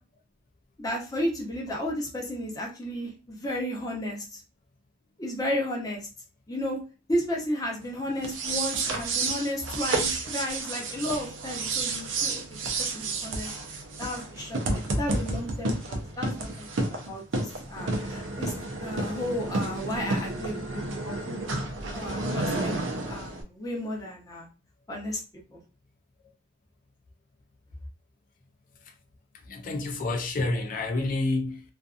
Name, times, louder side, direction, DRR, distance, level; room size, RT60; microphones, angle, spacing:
voice 1, 0.8-4.4 5.2-6.1 6.5-6.8 7.1-13.5 14.0-18.5 18.8-21.4 21.9-22.8 23.1-24.5 24.9-25.2 25.5-25.6, left 1 dB, 20° left, 0.7 m, -33 dB
sound 1, 8.2-23.4, right 2 dB, 85° right, 0.5 m, -31 dB
voice 2, 29.5-31.6, left 2 dB, 45° left, 0.4 m, -28 dB
2.6 x 2.5 x 2.3 m
head